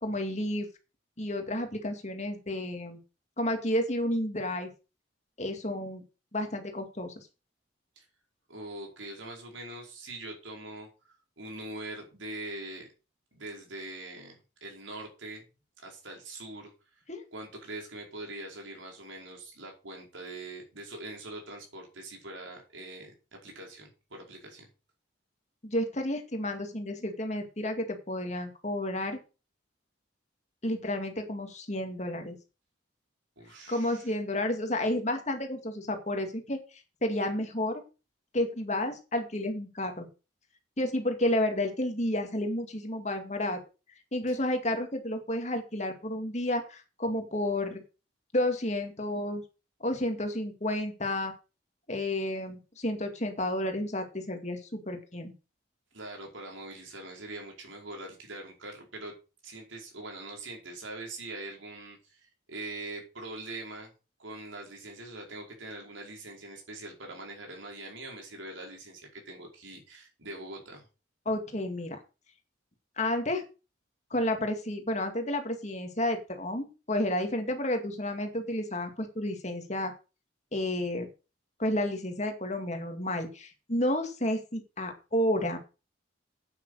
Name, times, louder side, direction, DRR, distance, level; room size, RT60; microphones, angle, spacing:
voice 1, 0.0-0.7 1.2-3.0 3.4-4.7 5.4-6.0 6.3-7.3 17.1-17.2 25.6-29.2 30.6-32.4 33.7-36.6 37.0-37.8 38.3-40.1 40.8-43.6 44.1-47.8 48.3-49.4 49.8-51.3 51.9-55.3 71.3-72.0 73.0-73.4 74.1-79.9 80.5-81.1 81.6-85.6, left 1 dB, 35° left, 5 dB, 2.3 m, -31 dB
voice 2, 8.5-10.9 11.4-12.9 13.3-15.4 15.8-16.7 17.3-23.1 23.4-24.7 33.4-34.1 44.3-44.4 55.9-59.1 59.4-63.9 64.2-70.9, right 2 dB, 80° right, 1 dB, 5.0 m, -43 dB
9.2 x 8.4 x 6.5 m, 0.32 s
head